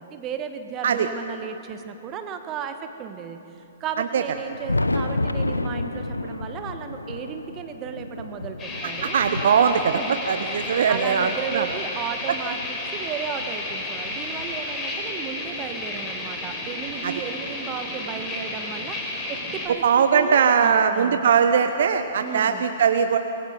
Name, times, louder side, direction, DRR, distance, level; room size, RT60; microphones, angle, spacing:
voice 1, 0.0-3.4 3.8-9.2 9.7-19.0 19.3-21.3 22.2-22.7, right 7 dB, 25° right, 7 dB, 1.4 m, -35 dB
Thunder, 4.2-12.7 13.4-15.1 16.2-16.3 16.9-17.0 18.9-19.0 20.3-20.4 22.0-22.1, left 2 dB, 80° left, 0.7 m, -32 dB
sound 1, 8.6-19.7, left 2 dB, 20° left, 4.5 m, -32 dB
voice 2, 9.0-10.0 10.3-11.6 17.0-17.1 19.8-23.2, right 7 dB, 55° right, 9 dB, 0.8 m, -20 dB
25.5 x 20.0 x 5.2 m, 3.0 s
figure-of-eight pair, 115°, 0 cm